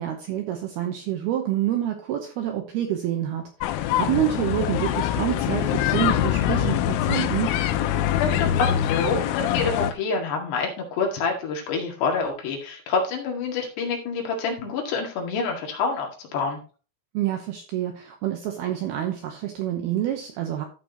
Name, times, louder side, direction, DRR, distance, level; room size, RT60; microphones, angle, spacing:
voice 1, 0.0-7.5 17.1-20.7, right 12 dB, 75° right, 4 dB, 2.4 m, -27 dB
sound 1, 3.6-9.9, left 11 dB, 90° left, 3.3 m, -24 dB
voice 2, 8.2-16.6, left 4 dB, 65° left, 1 dB, 3.8 m, -27 dB
14.0 x 6.1 x 2.9 m, 0.35 s
omnidirectional pair, 5.6 m